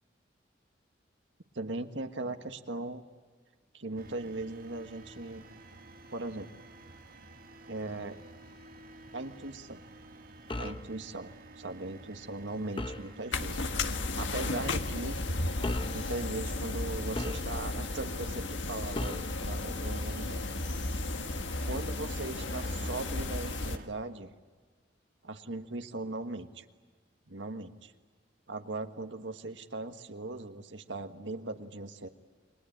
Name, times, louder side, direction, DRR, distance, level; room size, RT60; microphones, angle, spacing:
voice 1, 1.5-3.0 3.7-5.4 6.1-6.5 7.7-8.2 9.1-9.8 10.6-13.7 14.1-15.2 15.9-20.4 21.7-24.3 25.2-26.6 27.3-27.9 28.5-32.1, right 2 dB, 80° right, 6 dB, 1.5 m, -39 dB
sound 1, 4.0-23.9, right 2 dB, 50° right, 2.0 m, -52 dB
sound 2, 10.5-10.9 12.8-13.1 14.4-14.6 15.6-16.0 17.1-17.8 18.9-19.4, left 1 dB, 25° left, 0.9 m, -36 dB
sound 3, 13.3-23.8, left 2 dB, 80° left, 1.5 m, -34 dB
29.0 x 22.5 x 8.7 m, 1.5 s
head